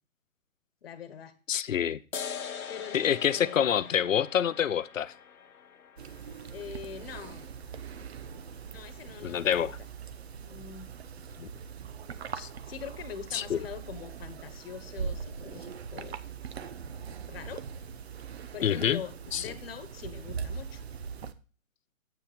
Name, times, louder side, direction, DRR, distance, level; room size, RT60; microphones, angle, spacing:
voice 1, 0.8-1.3 2.7-4.1 6.5-7.5 8.7-9.7 10.4-10.9 12.7-16.2 17.3-17.6 18.5-20.8, left 8 dB, 45° left, 1.3 m, -43 dB
voice 2, 1.5-2.0 2.9-5.1 9.2-9.8 11.4-11.5 12.3-12.5 13.3-13.6 18.6-19.0 19.3-19.4, left 9 dB, 65° left, 0.7 m, -27 dB
sound 1, 2.1-9.1, left 7 dB, 85° left, 1.0 m, -44 dB
sound 2, 6.0-21.3, right 6 dB, 50° right, 0.8 m, -41 dB
9.2 x 9.0 x 3.4 m
hypercardioid pair, 155°, 42 cm